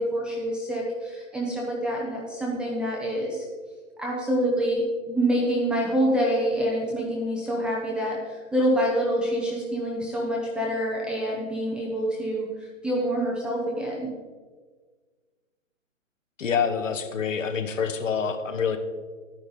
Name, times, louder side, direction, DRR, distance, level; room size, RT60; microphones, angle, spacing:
voice 1, 0.0-3.4 4.0-12.5 12.8-14.1, equal, 5° right, -4 dB, 0.4 m, -26 dB
voice 2, 16.4-18.8, left 6 dB, 70° left, 7 dB, 1.4 m, -26 dB
12.0 x 9.4 x 3.9 m, 1.5 s
hypercardioid pair, 130°, 39 cm